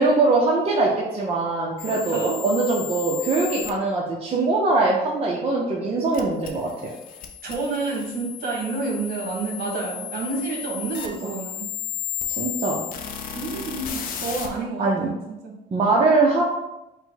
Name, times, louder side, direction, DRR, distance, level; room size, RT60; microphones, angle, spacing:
voice 1, 0.0-6.9 11.2-11.3 12.3-12.8 14.8-15.1 15.7-16.4, right 3 dB, 35° right, -3 dB, 0.7 m, -22 dB
sound 1, 1.8-3.7 6.1-14.5, left 9 dB, 55° left, 0.6 m, -34 dB
voice 2, 7.4-11.6 13.3-15.5, right 3 dB, 60° right, -2 dB, 1.5 m, -29 dB
5.4 x 2.2 x 3.9 m, 0.94 s
cardioid pair, 110°, 17 cm